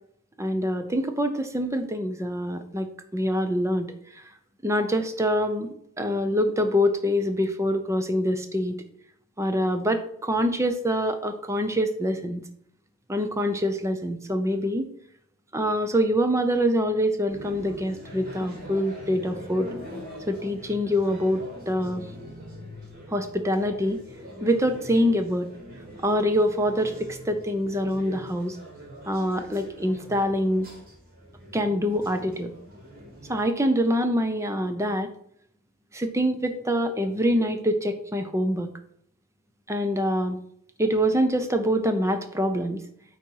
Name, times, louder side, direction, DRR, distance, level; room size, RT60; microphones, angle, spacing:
voice 1, 0.4-2.9 3.1-3.9 4.6-8.8 9.4-12.4 13.1-14.9 15.5-19.7 20.3-22.1 23.1-24.0 24.4-25.5 26.0-28.6 29.1-30.7 31.5-32.5 33.3-35.1 35.9-38.7 39.7-40.4 40.8-42.8, equal, 15° right, 7 dB, 0.7 m, -25 dB
sound 1, 17.3-33.4, equal, 40° right, 2.9 m, -43 dB
8.7 x 4.1 x 4.7 m, 0.68 s
head